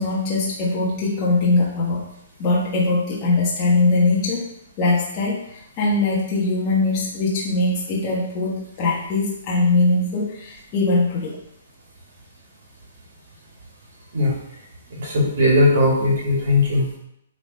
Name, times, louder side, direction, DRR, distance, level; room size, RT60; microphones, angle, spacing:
voice 1, 0.0-2.0 2.4-4.4 4.8-11.4, left 3 dB, 20° left, -6 dB, 1.3 m, -21 dB
voice 2, 15.0-16.8, left 2 dB, 55° right, -2 dB, 2.5 m, -18 dB
8.9 x 4.1 x 4.3 m, 0.75 s
hypercardioid pair, 170°, 0 cm